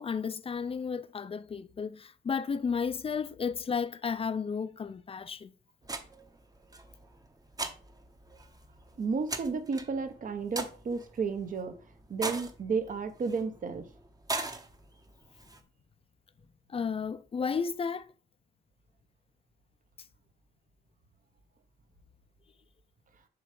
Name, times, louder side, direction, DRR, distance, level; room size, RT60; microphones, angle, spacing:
voice 1, 0.0-5.5 16.7-18.1, left 6 dB, 30° left, 0.5 m, -33 dB
sound 1, 5.8-15.6, right 2 dB, 20° right, 0.9 m, -41 dB
voice 2, 9.0-11.8 12.1-13.9, right 5 dB, 40° right, 0.9 m, -32 dB
6.9 x 3.2 x 5.3 m
cardioid pair, 90°, 20 cm